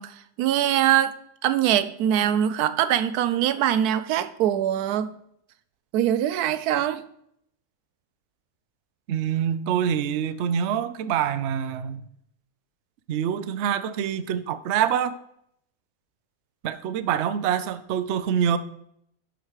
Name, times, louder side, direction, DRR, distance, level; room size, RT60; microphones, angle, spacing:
voice 1, 0.0-5.1 5.9-7.0, right 11 dB, 90° right, 1.1 m, -23 dB
voice 2, 9.1-12.1 13.1-15.2 16.6-18.6, right 9 dB, 60° right, 0.8 m, -25 dB
11.5 x 5.0 x 4.7 m
omnidirectional pair, 1.6 m